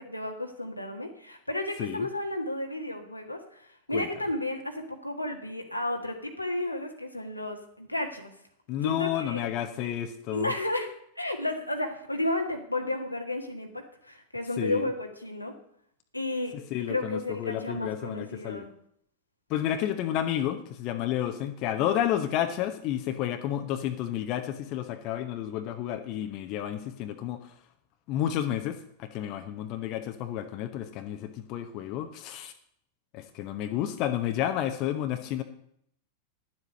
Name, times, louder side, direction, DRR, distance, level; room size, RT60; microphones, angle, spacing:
voice 1, 0.0-8.3 8.8-9.5 10.3-15.5 16.1-16.6 16.9-18.7, left 1 dB, 85° left, 4 dB, 1.5 m, -32 dB
voice 2, 8.7-10.5 14.6-14.9 16.5-18.7 19.5-27.5 28.1-32.5 33.1-35.4, left 11 dB, 40° left, 7 dB, 1.0 m, -31 dB
11.0 x 7.6 x 6.5 m, 0.68 s
figure-of-eight pair, 90°, 0 cm